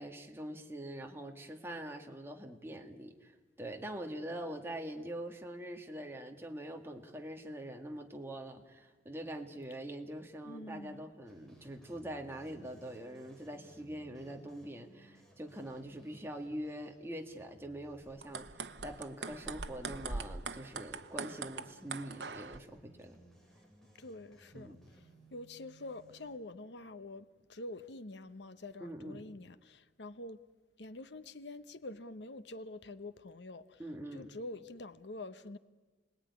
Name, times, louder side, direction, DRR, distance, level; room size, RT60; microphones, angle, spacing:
voice 1, 0.0-23.2 24.5-24.8 28.8-29.2 33.8-34.3, right 1 dB, 15° right, 2.1 m, -44 dB
voice 2, 10.4-11.0 24.0-30.4 30.8-33.8 34.1-35.6, left 2 dB, 80° left, 1.1 m, -46 dB
sound 1, 11.3-26.3, right 1 dB, 5° left, 5.6 m, -62 dB
sound 2, 18.1-22.6, right 4 dB, 85° right, 1.1 m, -42 dB
30.0 x 20.0 x 9.8 m
head